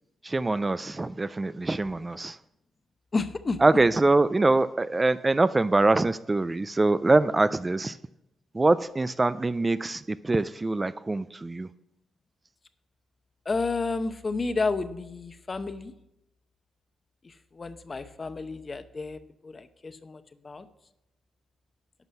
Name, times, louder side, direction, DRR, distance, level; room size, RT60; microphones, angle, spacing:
voice 1, 0.2-2.4 3.6-8.0 8.5-11.7, right 2 dB, 25° right, 14 dB, 0.3 m, -24 dB
voice 2, 3.1-3.6 13.5-15.9 17.2-20.7, left 3 dB, 35° left, 11 dB, 0.8 m, -31 dB
11.0 x 6.0 x 5.6 m, 0.85 s
cardioid pair, 75°, 0 cm